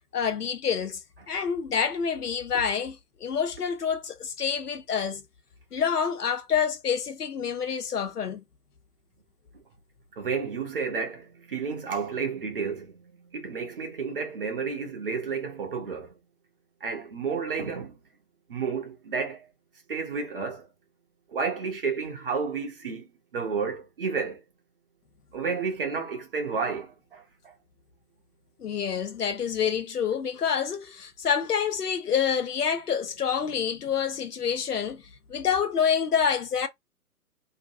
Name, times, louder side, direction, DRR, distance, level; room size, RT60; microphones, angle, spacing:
voice 1, 0.0-5.2 5.7-8.4 28.6-35.0 35.3-36.7, left 7 dB, 70° left, 0.7 m, -27 dB
voice 2, 10.2-16.1 16.8-18.0 18.5-19.5 19.9-20.7 21.3-23.1 23.3-24.4 25.3-27.2, right 5 dB, 35° right, 0.7 m, -31 dB
2.5 x 2.2 x 2.5 m
figure-of-eight pair, 135°, 48 cm